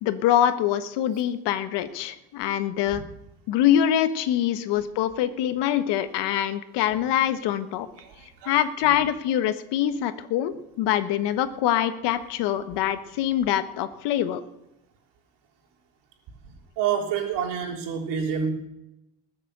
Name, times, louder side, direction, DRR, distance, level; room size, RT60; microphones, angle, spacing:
voice 1, 0.0-3.0 3.5-7.9 8.4-14.4, left 11 dB, 65° left, 10 dB, 1.3 m, -24 dB
voice 2, 8.0-8.5 16.8-18.5, right 7 dB, 65° right, 1 dB, 3.6 m, -28 dB
20.5 x 7.5 x 6.7 m, 0.89 s
cardioid pair, 130°, 44 cm